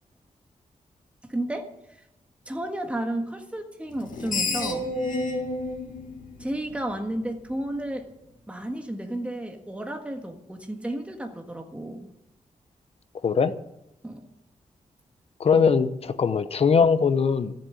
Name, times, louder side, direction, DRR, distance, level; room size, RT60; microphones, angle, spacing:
voice 1, 1.3-1.7 2.5-4.9 6.4-8.1 8.5-12.1 14.0-14.2 15.5-15.7, right 1 dB, 10° right, 4 dB, 1.5 m, -32 dB
Screech, 4.0-7.2, left 2 dB, 80° left, 2.1 m, -30 dB
voice 2, 13.2-13.5 15.4-17.5, left 6 dB, 45° left, 11 dB, 0.8 m, -21 dB
14.0 x 7.5 x 9.7 m, 0.86 s
wide cardioid pair, 165°, 14 cm